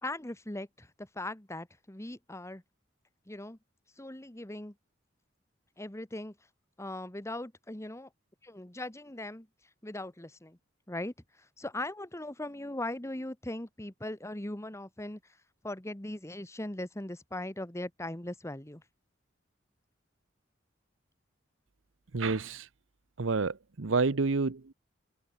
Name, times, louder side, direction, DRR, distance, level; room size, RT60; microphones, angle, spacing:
voice 1, 0.0-2.6 3.3-3.6 4.0-4.7 5.8-6.4 6.8-8.1 8.4-9.5 9.8-10.6 10.9-15.2 15.6-18.8, left 1 dB, 15° left, 1.5 m, -39 dB
voice 2, 22.1-22.7 23.2-24.7, right 4 dB, 90° right, 0.8 m, -29 dB
head